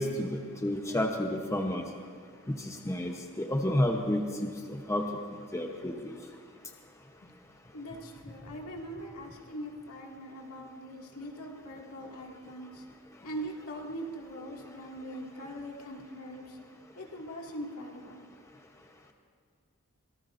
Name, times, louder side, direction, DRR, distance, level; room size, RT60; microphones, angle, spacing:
voice 1, 0.0-1.9 2.5-5.1 5.5-6.2, left 1 dB, 15° left, 2 dB, 0.9 m, -31 dB
voice 2, 7.7-12.8 13.2-16.6 17.0-18.2, equal, 75° left, -1 dB, 2.2 m, -42 dB
24.0 x 19.0 x 2.6 m, 2.2 s
head